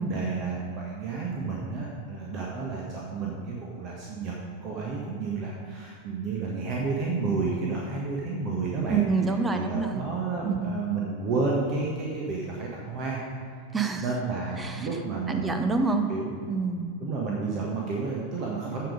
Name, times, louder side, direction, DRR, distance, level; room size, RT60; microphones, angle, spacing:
voice 1, 0.0-4.3 4.6-9.0 9.5-13.2 14.0-15.6 16.1-16.3 17.0-18.9, right 4 dB, 35° right, -3 dB, 1.5 m, -31 dB
voice 2, 8.9-10.1 10.4-10.8 13.7-14.1 14.6-14.9 15.3-16.1 16.5-16.9, right 4 dB, 15° right, 6 dB, 0.8 m, -27 dB
15.0 x 5.4 x 5.2 m, 2.3 s
figure-of-eight pair, 90°, 0 cm